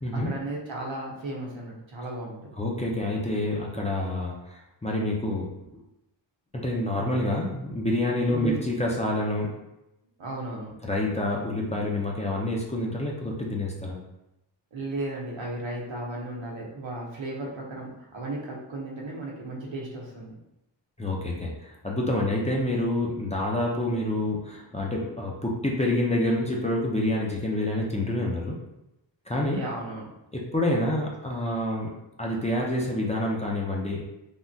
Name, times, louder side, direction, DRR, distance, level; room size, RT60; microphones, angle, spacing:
voice 1, 0.1-2.5 8.3-8.6 10.2-10.8 14.7-20.4 29.5-30.1, right 2 dB, 80° right, -3 dB, 0.9 m, -35 dB
voice 2, 2.6-5.6 6.5-9.6 10.8-14.0 21.0-28.6 29.3-29.6 30.3-31.9 32.2-34.0, left 1 dB, 15° left, -3 dB, 0.4 m, -27 dB
3.5 x 2.1 x 2.6 m, 0.90 s
wide cardioid pair, 105°, 45 cm